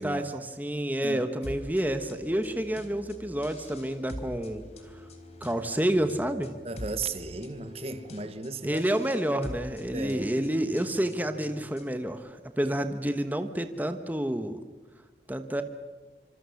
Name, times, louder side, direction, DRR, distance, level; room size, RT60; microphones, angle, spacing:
voice 1, 0.0-4.6 5.4-6.5 8.6-14.6 15.3-15.6, right 1 dB, 10° right, 1.1 m, -29 dB
sound 1, 1.4-12.1, left 1 dB, 40° left, 3.6 m, -44 dB
voice 2, 6.6-8.8 9.9-10.5 12.6-12.7, right 3 dB, 35° right, 1.2 m, -36 dB
26.5 x 26.0 x 7.1 m
head